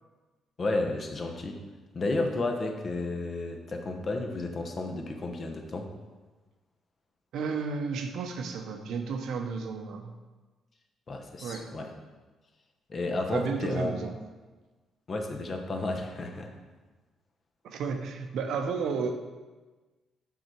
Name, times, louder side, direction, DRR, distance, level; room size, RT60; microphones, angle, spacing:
voice 1, 0.6-1.6 1.9-5.9 11.1-11.9 12.9-13.9 15.1-16.6, left 2 dB, 40° left, 4 dB, 0.9 m, -32 dB
voice 2, 7.3-10.1 11.4-11.7 13.3-14.1 17.6-19.2, right 5 dB, 75° right, 5 dB, 0.7 m, -32 dB
5.7 x 4.8 x 4.5 m, 1.3 s
cardioid pair, 90°, 0 cm